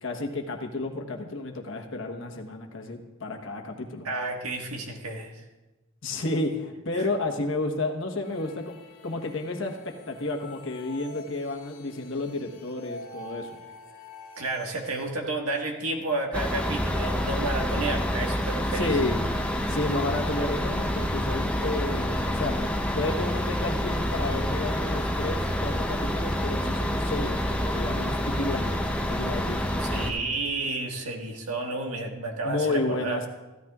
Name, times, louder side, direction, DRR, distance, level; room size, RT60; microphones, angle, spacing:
voice 1, 0.0-4.1 6.0-13.6 17.9-18.1 18.7-19.2 19.7-22.6 22.9-29.8 32.4-33.3, left 2 dB, 60° left, 3 dB, 1.2 m, -31 dB
voice 2, 4.0-5.4 6.9-7.0 14.4-18.9 29.8-33.2, right 2 dB, 90° right, 1 dB, 1.7 m, -31 dB
sound 1, 8.2-15.1, left 1 dB, 85° left, 1.5 m, -46 dB
sound 2, 16.3-30.1, equal, 5° left, 0.6 m, -28 dB
15.5 x 13.0 x 2.4 m, 1.1 s
head